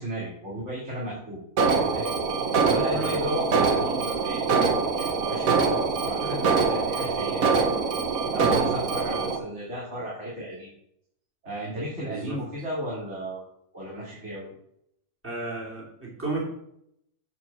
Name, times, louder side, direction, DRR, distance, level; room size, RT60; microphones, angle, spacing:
voice 1, 0.0-2.1 2.6-7.7 8.3-10.7 11.4-13.4 13.7-14.5, right 1 dB, 50° right, -6 dB, 2.9 m, -34 dB
Alarm, 1.6-9.4, right 4 dB, 70° right, 1.5 m, -24 dB
voice 2, 12.0-12.4 15.2-16.4, right 3 dB, 10° right, -5 dB, 2.8 m, -33 dB
8.4 x 4.7 x 6.9 m, 0.73 s
omnidirectional pair, 1.5 m